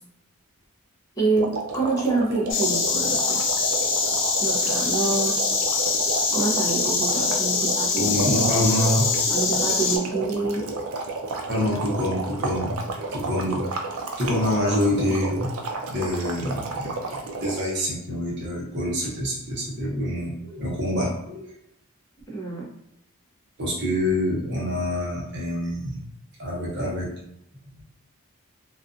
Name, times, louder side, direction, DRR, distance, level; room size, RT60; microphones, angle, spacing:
voice 1, 1.2-3.4 4.4-5.4 6.3-8.2 8.5-8.6 9.3-10.7 22.3-22.7, right 3 dB, 15° left, -6 dB, 0.6 m, -27 dB
sound 1, 1.3-17.8, right 3 dB, 75° right, 0.4 m, -32 dB
Insect, 2.5-10.0, left 4 dB, 60° left, 0.5 m, -24 dB
voice 2, 7.9-9.1 11.5-12.8 13.1-13.6 14.2-15.5 15.9-21.5 23.6-26.0 26.4-27.1, left 1 dB, 55° right, -4 dB, 0.9 m, -26 dB
2.4 x 2.4 x 2.5 m, 0.77 s
head